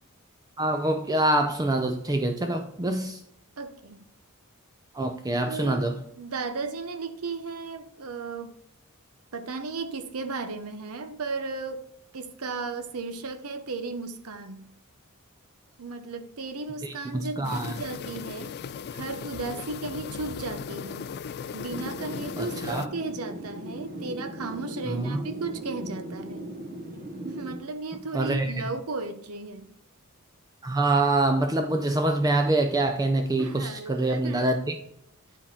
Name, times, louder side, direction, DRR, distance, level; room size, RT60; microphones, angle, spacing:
voice 1, 0.6-3.2 4.9-5.9 16.8-17.7 22.4-22.9 24.9-25.2 28.1-28.5 30.6-34.8, right 2 dB, 15° right, 6 dB, 0.4 m, -25 dB
voice 2, 3.6-4.0 5.5-5.9 6.2-8.5 9.3-11.9 12.1-14.7 15.8-18.5 18.9-21.1 21.5-26.5 27.2-29.7 33.4-34.5, right 3 dB, 80° right, 9 dB, 0.8 m, -35 dB
sound 1, 17.4-22.9, left 6 dB, 50° left, 0.3 m, -37 dB
sound 2, 21.7-27.6, right 1 dB, 45° right, 1.0 m, -38 dB
10.0 x 4.2 x 3.5 m, 0.74 s
head